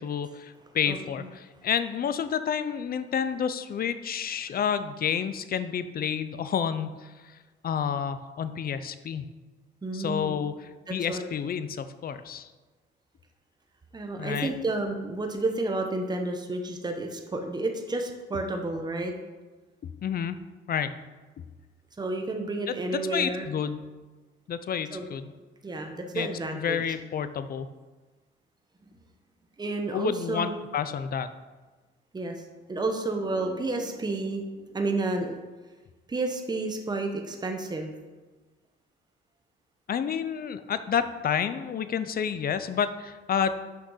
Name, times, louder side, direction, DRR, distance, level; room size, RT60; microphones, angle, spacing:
voice 1, 0.0-7.1 7.6-9.3 9.9-12.5 14.2-14.5 19.8-20.4 20.7-21.0 21.4-21.5 22.7-22.8 23.1-23.8 24.5-25.3 26.1-27.7 29.9-31.3 39.9-43.5, left 8 dB, 50° left, 12 dB, 0.6 m, -30 dB
voice 2, 0.9-1.3 9.8-10.3 10.9-11.3 13.9-19.1 22.0-23.5 24.9-25.1 25.6-26.8 29.6-30.5 32.1-32.4 32.7-34.4 34.7-35.4 36.1-37.9, right 2 dB, 20° right, 4 dB, 1.0 m, -31 dB
6.5 x 5.9 x 5.6 m, 1.3 s
cardioid pair, 100°, 20 cm